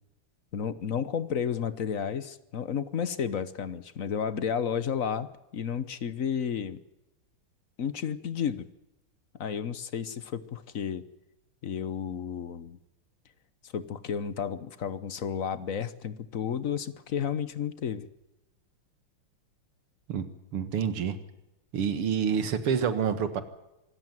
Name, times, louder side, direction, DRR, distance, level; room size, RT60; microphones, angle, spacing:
voice 1, 0.5-6.8 7.8-8.7 9.3-11.1 11.6-12.8 13.6-18.1, left 7 dB, 50° left, 14 dB, 1.2 m, -32 dB
voice 2, 20.5-21.2 21.7-23.4, right 7 dB, 90° right, 10 dB, 2.6 m, -27 dB
25.0 x 13.5 x 9.3 m, 0.93 s
omnidirectional pair, 2.4 m